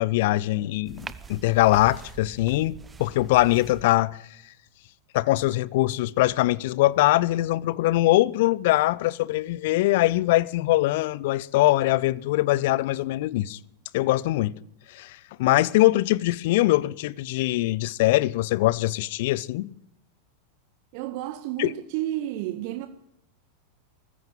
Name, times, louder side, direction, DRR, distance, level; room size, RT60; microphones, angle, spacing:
voice 1, 0.0-4.2 5.1-13.6 13.9-14.5 14.9-19.7 21.6-21.7, left 17 dB, 50° left, 0.7 m, -22 dB
sound 1, 0.8-3.8, right 5 dB, 15° right, 1.1 m, -43 dB
voice 2, 20.9-22.9, right 14 dB, 45° right, 1.2 m, -31 dB
20.0 x 15.0 x 9.1 m
figure-of-eight pair, 90°, 0 cm